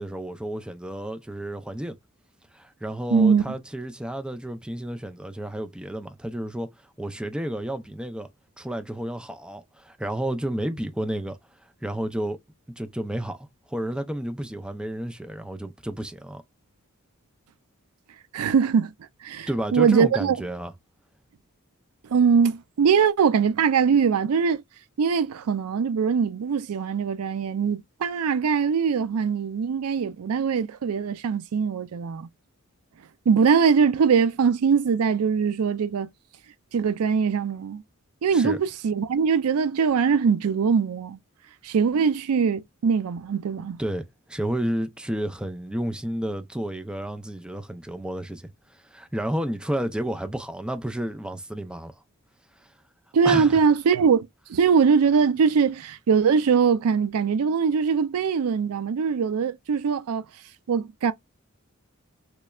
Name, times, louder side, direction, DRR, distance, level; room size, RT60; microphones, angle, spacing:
voice 1, 0.0-2.0 2.5-6.7 7.0-8.3 8.6-11.4 11.8-12.4 12.8-16.4 19.5-20.7 38.3-38.6 43.8-51.9 52.6-52.7 53.2-53.6, right 1 dB, 5° right, 0.4 m, -31 dB
voice 2, 3.1-3.4 18.3-18.9 19.2-20.4 22.1-24.6 25.0-32.3 33.3-36.1 36.7-37.8 38.2-41.2 41.6-43.8 53.1-60.2 60.7-61.1, right 6 dB, 85° right, 0.4 m, -22 dB
3.2 x 3.1 x 2.3 m
head